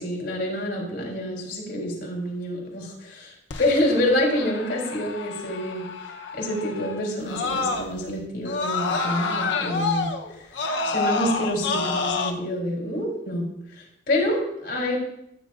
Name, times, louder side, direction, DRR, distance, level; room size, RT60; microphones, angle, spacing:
voice 1, 0.0-3.3 3.6-5.9 6.3-10.1 10.8-13.5 14.1-15.0, left 1 dB, 55° left, -1 dB, 3.3 m, -27 dB
Screaming, 3.5-8.1 8.5-12.3, left 4 dB, 85° left, 0.8 m, -28 dB
13.5 x 8.4 x 2.5 m, 0.79 s
head